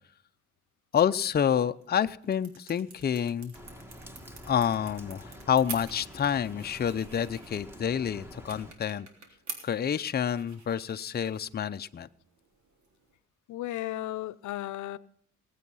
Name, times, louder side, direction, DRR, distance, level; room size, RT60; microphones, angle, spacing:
voice 1, 0.9-3.5 4.5-9.1 9.6-12.1, left 8 dB, 30° left, 0.6 m, -28 dB
sound 1, 1.6-13.2, right 4 dB, 65° right, 3.4 m, -48 dB
Rain, 3.5-8.7, equal, 10° right, 2.1 m, -48 dB
voice 2, 13.5-15.0, left 14 dB, 75° left, 0.6 m, -35 dB
19.0 x 8.4 x 5.5 m
cardioid pair, 90°, 30 cm